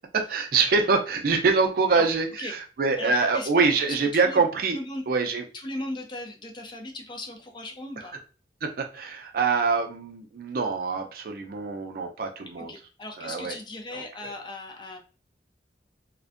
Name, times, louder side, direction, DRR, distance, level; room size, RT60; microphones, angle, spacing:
voice 1, 0.1-4.8 5.1-5.4 8.6-12.7 13.2-13.6 13.9-14.3, right 4 dB, 55° right, 4 dB, 0.4 m, -25 dB
voice 2, 3.0-3.5 3.8-4.0 4.2-4.4 4.7-5.0 5.5-8.2 12.6-15.0, left 1 dB, 25° left, 2 dB, 0.4 m, -37 dB
2.5 x 2.1 x 2.4 m, 0.36 s
head